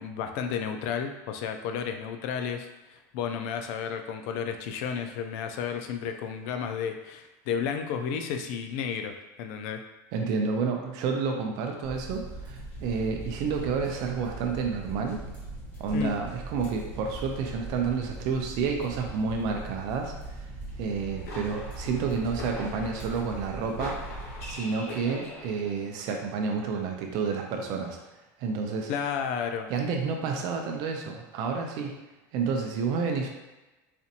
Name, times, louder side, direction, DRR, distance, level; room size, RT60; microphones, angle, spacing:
voice 1, 0.0-9.8 15.9-16.1 28.9-29.7, left 7 dB, 60° left, 6 dB, 0.4 m, -32 dB
voice 2, 10.1-15.2 15.8-20.1 20.8-24.0 24.4-28.0 28.4-28.9 29.7-32.0 32.3-33.3, right 5 dB, 50° right, 2 dB, 0.5 m, -30 dB
sound 1, 11.8-24.5, right 2 dB, 20° left, 1.5 m, -40 dB
sound 2, 20.8-25.9, left 2 dB, 90° left, 0.9 m, -42 dB
4.2 x 2.5 x 2.7 m, 1.1 s
cardioid pair, 160°, 8 cm